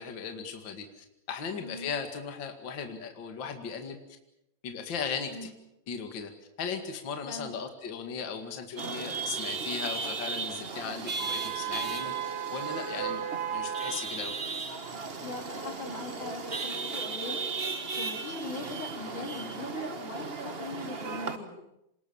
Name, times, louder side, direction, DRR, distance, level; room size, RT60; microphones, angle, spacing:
voice 1, 0.0-4.0 4.6-5.5 5.9-6.3 6.6-13.2 13.5-14.3, left 6 dB, 40° left, 5 dB, 2.5 m, -37 dB
voice 2, 1.6-1.9 5.3-5.5 7.3-7.5 15.2-21.6, left 3 dB, 90° left, 2 dB, 5.2 m, -41 dB
Chatter / Vehicle horn car horn honking / Traffic noise roadway noise, 8.8-21.4, right 5 dB, 55° right, 0.6 m, -35 dB
26.5 x 20.0 x 7.1 m, 0.85 s
omnidirectional pair, 3.4 m